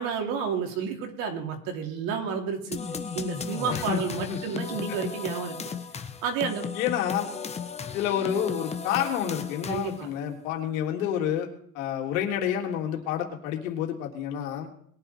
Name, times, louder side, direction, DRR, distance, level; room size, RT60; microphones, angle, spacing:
voice 1, 0.0-2.8 3.1-5.6 6.2-6.7 9.6-10.1, right 6 dB, 55° right, 2 dB, 3.5 m, -31 dB
sound 1, 2.7-10.1, left 5 dB, 15° left, 1.2 m, -35 dB
voice 2, 3.7-4.0 4.3-4.4 6.7-7.3 7.9-11.5 11.7-14.7, left 9 dB, 70° left, 1 dB, 3.4 m, -29 dB
21.5 x 9.7 x 4.6 m, 0.65 s
supercardioid pair, 125°, 41 cm